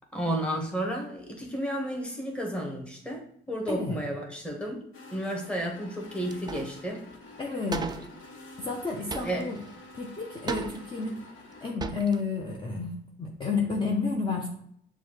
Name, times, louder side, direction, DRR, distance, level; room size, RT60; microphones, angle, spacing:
voice 1, 0.1-4.8 5.1-7.0 9.2-9.4, right 1 dB, 5° left, 0 dB, 1.1 m, -32 dB
voice 2, 3.7-4.0 7.4-7.9 8.6-9.6 10.0-11.2 11.6-14.5, left 4 dB, 25° left, -2 dB, 0.7 m, -31 dB
sound 1, 4.9-11.7, left 2 dB, 80° left, 1.0 m, -48 dB
sound 2, 6.3-6.8 7.1-7.2 7.7-8.2 9.1-9.8 10.5-11.1 11.5-11.6 11.8-12.2, right 4 dB, 20° right, 0.3 m, -36 dB
6.7 x 2.3 x 3.1 m, 0.68 s
cardioid pair, 90°, 20 cm